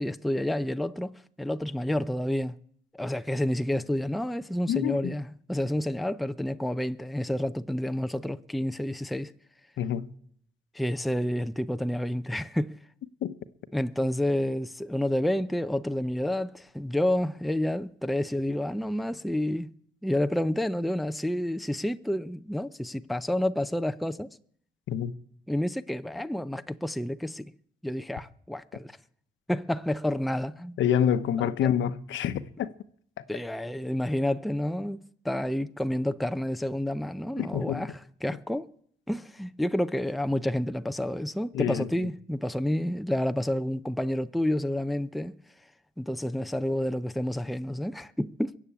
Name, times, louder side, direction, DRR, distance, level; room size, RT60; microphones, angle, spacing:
voice 1, 0.0-2.5 2.9-9.3 10.7-12.7 13.7-19.7 20.0-24.3 25.5-27.5 27.8-28.9 29.5-30.8 31.4-31.7 33.3-38.7 39.1-45.4 46.0-48.5, left 1 dB, ahead, 0.6 m, -29 dB
voice 2, 4.7-5.1 9.8-10.1 13.2-13.3 24.9-25.1 30.8-32.7 37.4-37.9 41.5-41.9, left 9 dB, 75° left, 0.9 m, -27 dB
22.5 x 7.5 x 8.5 m
cardioid pair, 90°, 20 cm